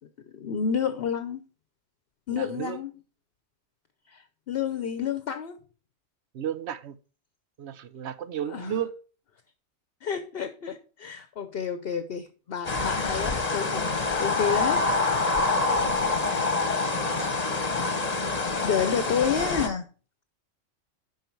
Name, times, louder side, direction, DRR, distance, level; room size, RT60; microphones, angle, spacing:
voice 1, 0.3-1.4 2.3-2.9 4.1-5.6 8.5-8.7 10.0-14.9 16.4-16.5 17.8-18.0 18.6-19.8, left 7 dB, 60° left, 0.9 m, -30 dB
voice 2, 2.3-2.8 6.3-7.0 7.6-8.9 15.7-16.0 17.0-17.3, right 9 dB, 65° right, 1.0 m, -34 dB
sound 1, 12.7-19.7, left 3 dB, 35° left, 1.2 m, -26 dB
11.5 x 4.6 x 4.6 m
omnidirectional pair, 1.2 m